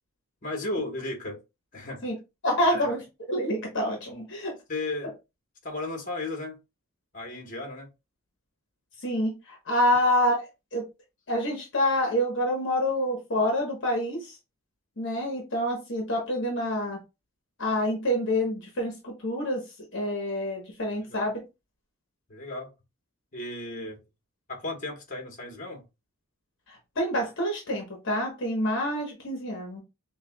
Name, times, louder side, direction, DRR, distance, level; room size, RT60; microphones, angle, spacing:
voice 1, 0.4-1.4 1.7-2.1 2.7-2.9 4.7-5.1 5.6-6.6 7.1-7.9 21.1-21.3 22.3-22.7 23.3-24.0 24.5-25.8, left 2 dB, 35° left, 1.3 m, -34 dB
voice 2, 2.4-3.0 3.3-4.6 9.0-10.8 11.3-14.4 15.0-17.0 17.6-19.6 19.9-21.4 26.7-29.8, left 1 dB, 55° left, 1.1 m, -27 dB
6.5 x 2.4 x 2.2 m
head